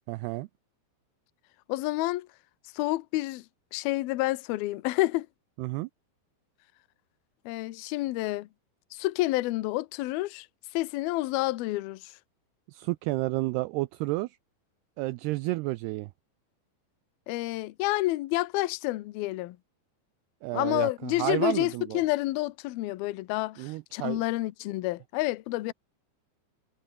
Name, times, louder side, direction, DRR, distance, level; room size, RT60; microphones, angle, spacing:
voice 1, 0.1-0.5 5.6-5.9 12.7-14.4 15.0-16.1 20.4-22.0 23.6-24.2, right 20 dB, 90° right, 2.3 m, -31 dB
voice 2, 1.7-2.3 2.7-3.4 3.7-5.3 7.5-8.5 8.9-10.5 10.7-12.1 17.3-19.6 20.5-25.7, left 18 dB, 75° left, 2.4 m, -29 dB
omnidirectional pair, 5.3 m